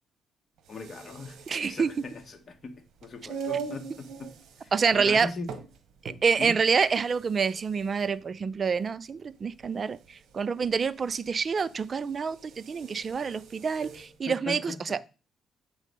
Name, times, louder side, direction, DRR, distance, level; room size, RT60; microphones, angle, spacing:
sound 1, 0.6-14.2, right 6 dB, 75° right, 1.0 m, -43 dB
voice 1, 0.7-4.3 4.6-5.5 6.4-6.6 13.8-13.9 14.3-15.1, left 3 dB, 40° left, 1.1 m, -40 dB
voice 2, 1.5-1.9 4.7-5.3 6.0-15.0, right 5 dB, 40° right, 0.4 m, -27 dB
7.3 x 3.2 x 5.3 m
cardioid pair, 90°, 0 cm